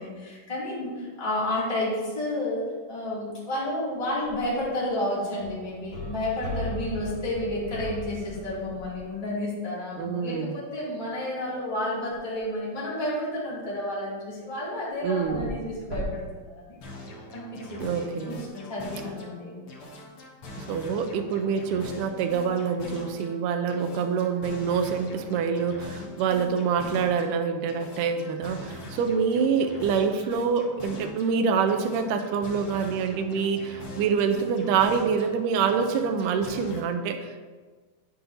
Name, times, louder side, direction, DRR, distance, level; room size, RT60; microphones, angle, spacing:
voice 1, 0.0-16.8 17.3-19.6 26.0-26.1, left 1 dB, 10° left, -8 dB, 1.9 m, -31 dB
sound 1, 4.3-4.7 5.4-9.1 12.1-12.2 15.0-15.6 15.9-16.1, left 1 dB, 55° right, 3.5 m, -37 dB
voice 2, 10.0-10.5 15.0-15.7 17.8-18.4 20.6-37.4, right 6 dB, 80° right, 5 dB, 2.0 m, -26 dB
sound 2, 16.8-19.4 19.7-23.4 23.7-27.3 27.7-31.3 31.7-35.4 35.7-36.8, left 1 dB, 60° left, 1.5 m, -42 dB
9.8 x 7.9 x 2.7 m, 1.4 s
omnidirectional pair, 4.1 m